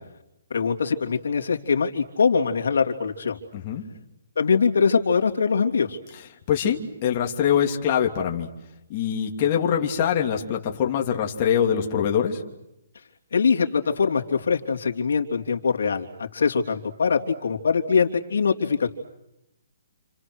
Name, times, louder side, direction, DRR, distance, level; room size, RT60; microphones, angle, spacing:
voice 1, 0.5-3.4 4.3-6.0 13.3-16.1 16.3-18.9, left 5 dB, 75° left, 2 dB, 3.3 m, -22 dB
voice 2, 3.5-3.8 6.5-8.5 8.9-12.4, left 8 dB, 30° left, 1 dB, 2.9 m, -23 dB
30.0 x 28.5 x 6.4 m, 0.88 s
hypercardioid pair, 170°, 0 cm